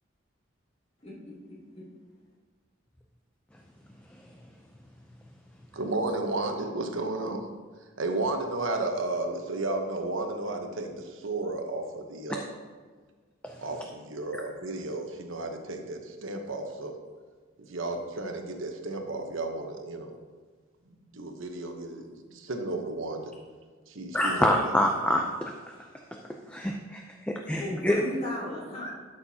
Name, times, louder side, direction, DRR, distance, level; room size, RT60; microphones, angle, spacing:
voice 1, 1.0-1.9 27.6-28.9, left 1 dB, 30° left, -7 dB, 2.8 m, -36 dB
voice 2, 5.7-7.5 8.0-12.5 13.6-17.0 17.6-20.2 21.1-23.3 23.9-24.8, right 2 dB, 75° right, 4 dB, 1.0 m, -33 dB
voice 3, 24.1-25.5 26.5-28.0, left 1 dB, 5° left, 1 dB, 0.5 m, -26 dB
12.5 x 6.7 x 2.8 m, 1.5 s
head